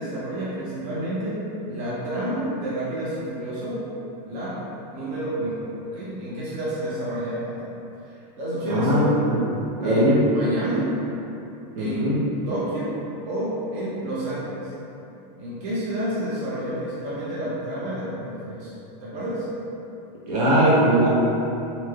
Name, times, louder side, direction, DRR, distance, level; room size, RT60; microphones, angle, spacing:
voice 1, 0.0-3.8 4.3-4.6 4.9-5.6 5.9-7.7 8.0-9.1 9.8-10.9 11.8-12.1 12.5-12.9 13.2-14.7 15.4-18.7 19.0-19.5, right 1 dB, 35° right, -9 dB, 0.6 m, -29 dB
voice 2, 8.7-9.3 9.8-10.3 11.8-12.2 20.3-21.1, right 1 dB, 70° right, -7 dB, 0.9 m, -19 dB
3.1 x 2.6 x 2.3 m, 2.9 s
supercardioid pair, 160°, 21 cm